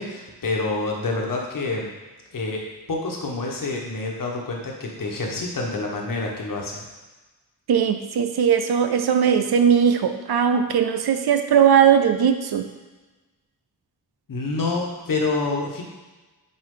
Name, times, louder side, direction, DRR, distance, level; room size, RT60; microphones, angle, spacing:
voice 1, 0.0-1.9 2.3-6.8 14.3-15.8, left 3 dB, 55° left, -1 dB, 1.4 m, -27 dB
voice 2, 7.7-12.7, right 8 dB, 75° right, 7 dB, 0.7 m, -19 dB
8.1 x 4.6 x 3.9 m, 1.2 s
wide cardioid pair, 135°, 38 cm